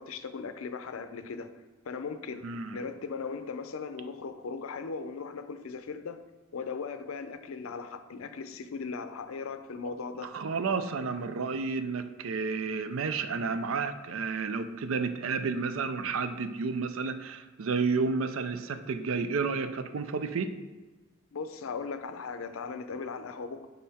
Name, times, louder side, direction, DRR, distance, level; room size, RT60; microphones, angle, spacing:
voice 1, 0.0-1.6 1.9-2.5 2.7-6.2 6.5-10.3 21.3-23.7, left 5 dB, 80° left, 10 dB, 0.5 m, -38 dB
voice 2, 2.4-2.9 10.2-20.5, right 4 dB, 70° right, 10 dB, 0.4 m, -31 dB
5.6 x 5.2 x 4.2 m, 1.2 s
head